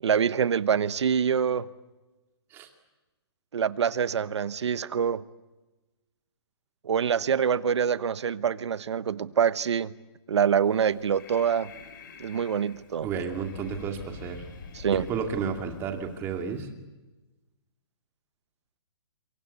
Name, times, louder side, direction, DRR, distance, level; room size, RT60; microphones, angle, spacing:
voice 1, 0.0-1.7 3.5-5.2 6.8-9.9 10.3-11.7 12.2-13.1 14.7-15.0, right 7 dB, 80° right, 1.2 m, -25 dB
Breathing, 10.7-16.6, left 5 dB, 50° left, 5.0 m, -47 dB
voice 2, 13.0-14.4 14.9-16.7, right 6 dB, 15° right, 2.4 m, -32 dB
27.5 x 23.5 x 8.4 m
hypercardioid pair, 170°, 14 cm